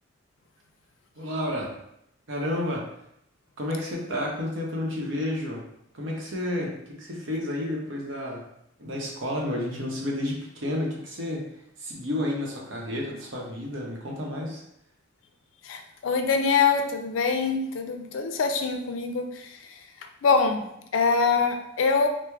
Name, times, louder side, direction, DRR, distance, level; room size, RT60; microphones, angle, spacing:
voice 1, 1.2-1.8 2.3-2.9 3.6-5.6 5.9-8.5 8.8-11.5 11.8-14.6, left 1 dB, 75° right, -2 dB, 0.8 m, -31 dB
voice 2, 15.6-19.8 20.2-22.1, left 5 dB, 90° left, 6 dB, 0.4 m, -24 dB
4.4 x 2.0 x 2.3 m, 0.77 s
head